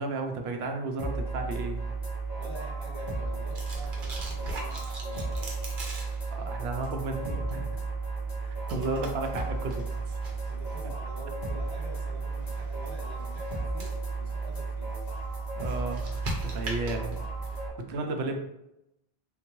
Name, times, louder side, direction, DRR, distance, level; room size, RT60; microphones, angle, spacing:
voice 1, 0.0-1.8 6.3-7.7 8.7-10.2 15.5-17.1 17.5-18.4, right 3 dB, 85° right, 4 dB, 0.8 m, -33 dB
sound 1, 1.0-17.7, right 3 dB, 40° left, 1.2 m, -34 dB
sound 2, 1.2-17.6, right 1 dB, 60° right, 0.9 m, -44 dB
voice 2, 2.4-5.5 8.4-8.9 10.5-13.9 14.1-14.9 17.4-18.0, right 1 dB, 30° right, -5 dB, 1.0 m, -47 dB
3.7 x 2.2 x 3.0 m, 0.87 s
omnidirectional pair, 1.0 m